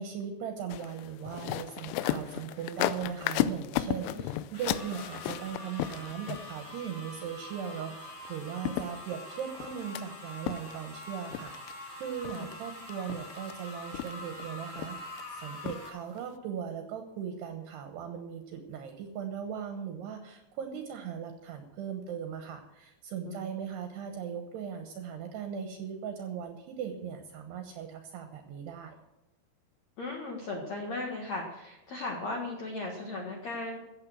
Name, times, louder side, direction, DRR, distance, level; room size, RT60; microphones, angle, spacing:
voice 1, 0.0-29.0, right 8 dB, 70° right, 5 dB, 3.0 m, -39 dB
sound 1, 0.7-6.7 8.3-8.4 8.7-10.0 10.5-11.0 11.3-11.7 12.3-12.6 12.9-13.5 13.9-14.4 14.8-15.2 15.7-15.9 16.2-16.3, left 13 dB, 90° left, 3.1 m, -34 dB
sound 2, 4.5-15.9, left 1 dB, 30° left, 3.5 m, -45 dB
voice 2, 23.2-23.6 30.0-33.8, left 2 dB, 60° left, 0 dB, 2.0 m, -37 dB
15.0 x 8.5 x 6.3 m, 0.94 s
omnidirectional pair, 5.4 m